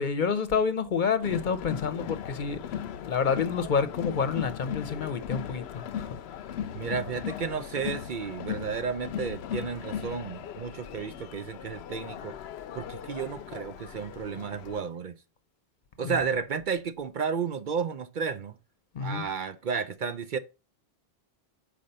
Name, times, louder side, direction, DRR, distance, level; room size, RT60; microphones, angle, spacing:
voice 1, 0.0-6.7 16.0-16.2 18.9-19.2, left 6 dB, 55° left, 0.8 m, -29 dB
Crowd, 1.2-14.8, left 9 dB, 85° left, 0.9 m, -38 dB
voice 2, 6.7-12.3 12.7-15.2 16.0-18.6 19.0-20.4, right 6 dB, 55° right, 0.7 m, -32 dB
5.7 x 5.1 x 6.6 m
omnidirectional pair, 1.1 m